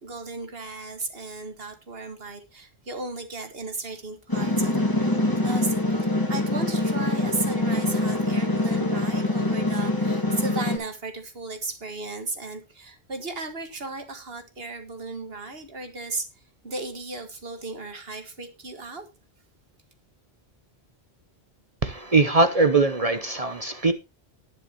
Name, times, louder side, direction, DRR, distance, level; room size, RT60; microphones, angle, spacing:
voice 1, 0.0-16.3 16.6-19.1, right 3 dB, 65° right, 2.0 m, -35 dB
sound 1, 4.3-10.8, left 1 dB, 20° left, 1.8 m, -24 dB
voice 2, 21.8-23.9, right 3 dB, 40° right, 0.8 m, -21 dB
19.0 x 6.7 x 2.9 m
omnidirectional pair, 1.1 m